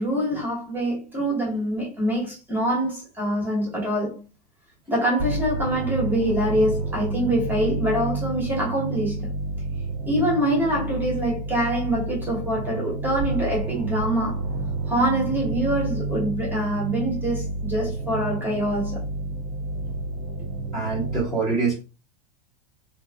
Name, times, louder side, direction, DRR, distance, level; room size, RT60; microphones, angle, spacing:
voice 1, 0.0-4.2 4.9-9.3 10.1-14.4 14.9-19.1, equal, 10° right, 1.1 m, -25 dB
sound 1, 5.2-21.2, right 3 dB, 35° right, 0.6 m, -30 dB
voice 2, 20.7-21.8, right 4 dB, 15° left, 1.1 m, -25 dB
2.5 x 2.3 x 2.3 m
hypercardioid pair, 120°, 21 cm